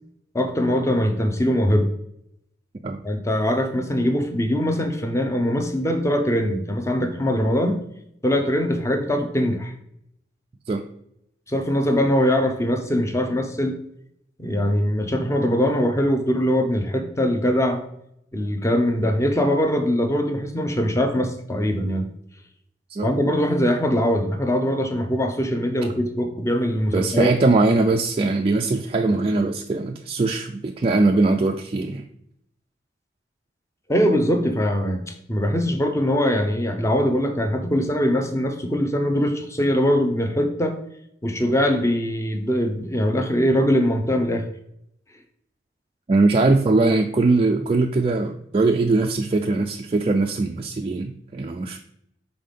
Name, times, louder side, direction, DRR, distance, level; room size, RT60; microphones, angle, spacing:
voice 1, 0.3-1.9 3.0-7.8 8.2-9.7 11.5-13.7 14.4-17.8 18.3-22.1 23.0-27.3 33.9-40.8 41.2-44.4, equal, 15° left, 5 dB, 0.7 m, -22 dB
voice 2, 26.9-32.1 46.1-51.8, right 3 dB, 30° right, 3 dB, 0.3 m, -21 dB
5.6 x 4.1 x 5.2 m, 0.76 s
head